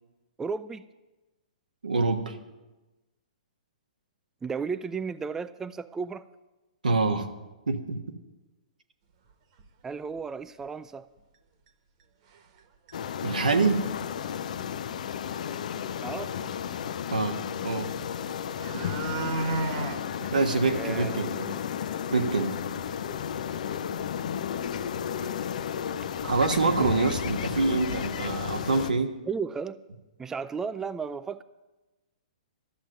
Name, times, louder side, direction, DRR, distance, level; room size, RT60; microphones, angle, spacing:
voice 1, 0.4-0.9 4.4-6.3 9.8-11.1 16.0-16.3 20.7-21.4 26.8-27.0 29.3-29.8 30.2-31.4, right 5 dB, 10° right, 14 dB, 0.3 m, -34 dB
voice 2, 1.8-2.4 6.8-7.3 7.7-8.0 13.2-13.8 17.1-17.9 18.7-18.9 20.2-21.6 22.1-22.6 26.2-29.2, right 3 dB, 90° right, 5 dB, 1.4 m, -26 dB
sound 1, 9.6-9.7 10.2-10.3 10.6-10.7 11.7-11.8 12.3-12.6 12.9-13.0 13.3-13.7 15.2-15.3 15.5-15.6 17.9-18.0 18.4-20.0 20.4-20.5 20.9-21.0 21.4-21.5 21.8-21.9 24.7-24.8 25.1-25.3 26.0-26.1 26.6-26.8 27.0-27.8 28.2-28.3, right 3 dB, 50° right, 1.5 m, -34 dB
sound 2, 12.9-28.9, left 8 dB, 65° left, 0.7 m, -33 dB
13.0 x 7.2 x 9.0 m, 1.1 s
hypercardioid pair, 130°, 4 cm